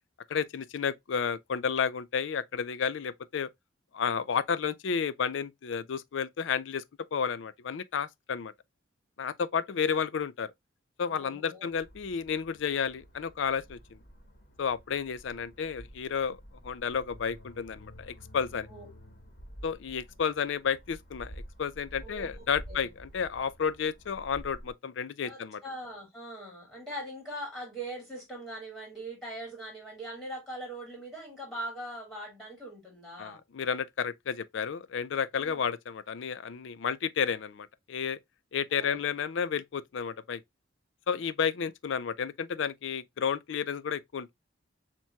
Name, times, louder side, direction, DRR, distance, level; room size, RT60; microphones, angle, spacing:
voice 1, 0.3-3.5 3.9-6.8 7.1-8.5 9.2-10.5 11.0-14.0 14.6-18.7 19.6-25.6 33.2-38.2 38.5-40.4 41.1-44.3, left 6 dB, 70° left, 0.4 m, -32 dB
voice 2, 11.1-11.7 18.7-18.9 22.0-22.9 25.2-33.4 35.4-35.6 38.7-39.0, right 1 dB, ahead, 2.7 m, -41 dB
sound 1, 11.7-24.7, equal, 50° left, 1.6 m, -50 dB
7.1 x 3.0 x 2.2 m
head